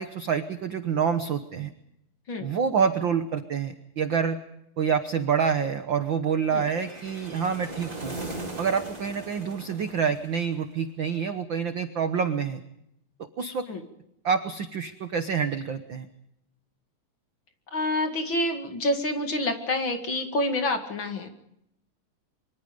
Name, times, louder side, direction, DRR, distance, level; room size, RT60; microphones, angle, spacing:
voice 1, 0.0-1.7 2.4-4.4 4.8-8.2 8.6-12.6 13.2-13.7 14.2-16.1, right 6 dB, 60° right, 8 dB, 1.3 m, -27 dB
sound 1, 6.5-10.7, right 2 dB, 15° right, 4.4 m, -39 dB
voice 2, 17.7-21.3, left 1 dB, 40° left, 5 dB, 2.5 m, -27 dB
25.0 x 25.0 x 5.2 m, 0.79 s
omnidirectional pair, 3.6 m